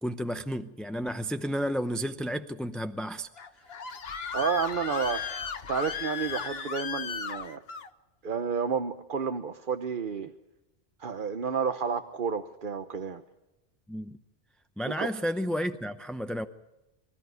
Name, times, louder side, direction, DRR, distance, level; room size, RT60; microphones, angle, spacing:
voice 1, 0.0-3.3 13.9-14.2 14.8-16.5, equal, ahead, 0.5 m, -32 dB
Screaming, 3.4-7.9, left 6 dB, 65° left, 1.3 m, -35 dB
voice 2, 4.3-5.4 5.7-7.6 8.2-10.3 11.0-13.2 14.8-15.1, right 6 dB, 50° right, 1.0 m, -31 dB
25.0 x 14.0 x 9.4 m
omnidirectional pair, 1.1 m